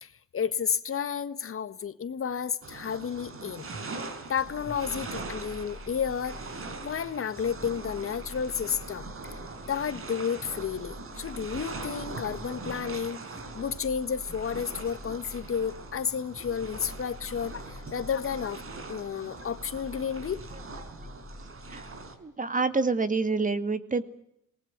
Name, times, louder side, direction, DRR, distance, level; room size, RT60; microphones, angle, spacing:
voice 1, 0.0-3.7 4.3-6.4 6.8-9.1 9.7-13.2 13.5-18.6 18.9-20.4, left 7 dB, 45° left, 12 dB, 1.6 m, -31 dB
sound 1, 2.6-22.2, right 3 dB, 45° right, 5.1 m, -42 dB
sound 2, 4.4-22.1, left 2 dB, 5° left, 6.8 m, -47 dB
voice 2, 22.2-24.0, right 4 dB, 25° right, 12 dB, 2.3 m, -27 dB
27.5 x 20.0 x 8.1 m, 0.78 s
cardioid pair, 90°, 30 cm